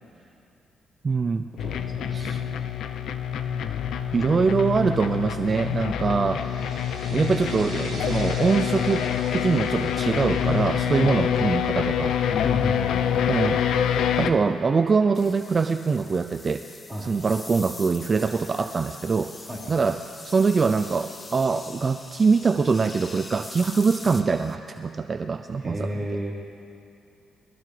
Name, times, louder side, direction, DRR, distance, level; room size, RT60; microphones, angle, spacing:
voice 1, 1.0-1.4 2.1-2.4 4.1-6.5 7.1-9.0 9.3-12.2 13.3-13.6 14.2-16.6 17.0-19.3 19.7-20.0 20.2-26.0, right 4 dB, 35° right, 9 dB, 0.5 m, -23 dB
sound 1, 1.6-14.3, left 9 dB, 75° left, 0.6 m, -26 dB
voice 2, 1.6-2.4 11.0-11.2 12.4-13.1 16.9-17.1 19.5-19.7 25.6-26.3, right 1 dB, 5° right, -7 dB, 4.4 m, -33 dB
sound 2, 6.1-12.4, right 5 dB, 70° right, 2.6 m, -45 dB
sound 3, 15.1-24.5, left 3 dB, 25° left, 1.0 m, -43 dB
22.5 x 15.5 x 3.4 m, 2.6 s
cardioid pair, 90°, 0 cm